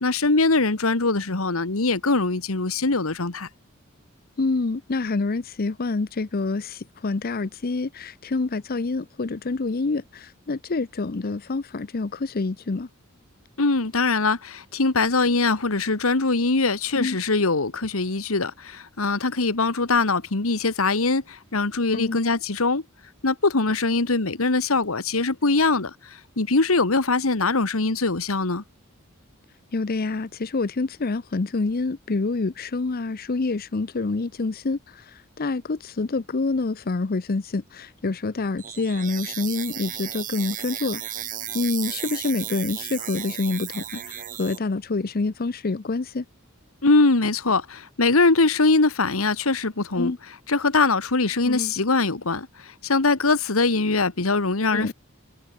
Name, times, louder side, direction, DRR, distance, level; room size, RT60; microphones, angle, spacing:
voice 1, 0.0-3.5 13.6-22.8 23.2-28.6 46.8-50.1 50.5-54.9, left 3 dB, 90° left, 1.7 m, -22 dB
voice 2, 4.4-12.9 16.9-17.2 21.9-22.2 29.7-41.2 41.5-46.2 50.0-50.2 51.4-51.7 54.7-54.9, left 3 dB, 45° left, 0.6 m, -27 dB
sound 1, 38.6-44.6, right 11 dB, 40° right, 1.4 m, -34 dB
head